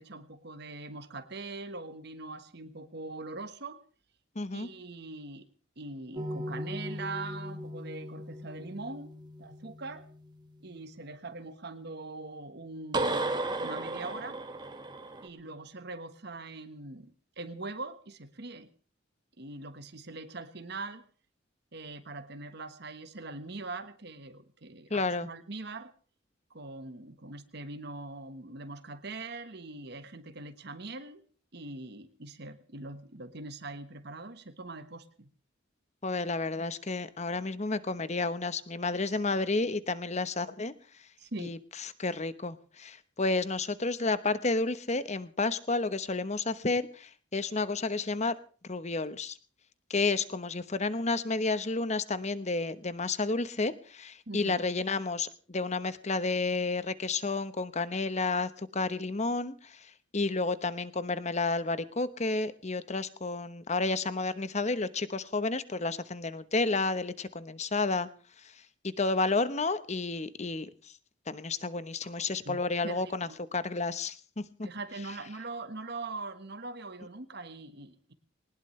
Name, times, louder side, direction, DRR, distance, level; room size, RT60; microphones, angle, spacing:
voice 1, 0.0-3.8 4.5-5.5 5.8-9.1 9.4-10.1 10.6-13.3 13.6-14.4 15.2-18.7 19.4-21.0 21.7-25.9 26.5-31.2 31.5-35.3 39.0-39.2 41.2-41.6 54.3-54.6 72.0-73.4 74.6-78.1, right 3 dB, 55° right, 9 dB, 1.3 m, -42 dB
voice 2, 4.4-4.7 24.9-25.3 36.0-40.7 41.4-48.3 48.7-49.4 49.9-59.7 60.1-68.1 68.8-70.7 71.3-74.7, left 3 dB, 35° left, 14 dB, 1.0 m, -31 dB
sound 1, 6.2-10.5 12.9-15.3, right 1 dB, 25° right, 1.8 m, -36 dB
20.5 x 19.5 x 3.3 m, 0.40 s
head